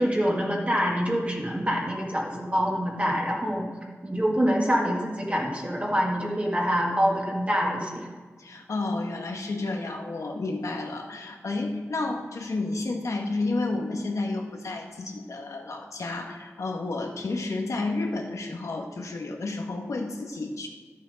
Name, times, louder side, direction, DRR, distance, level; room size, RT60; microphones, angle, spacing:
voice 1, 0.0-3.7 4.0-8.1, equal, 25° right, -3 dB, 1.7 m, -25 dB
voice 2, 8.4-20.7, left 2 dB, 85° left, 2 dB, 1.4 m, -31 dB
12.0 x 7.4 x 5.2 m, 1.5 s
wide cardioid pair, 85°, 5 cm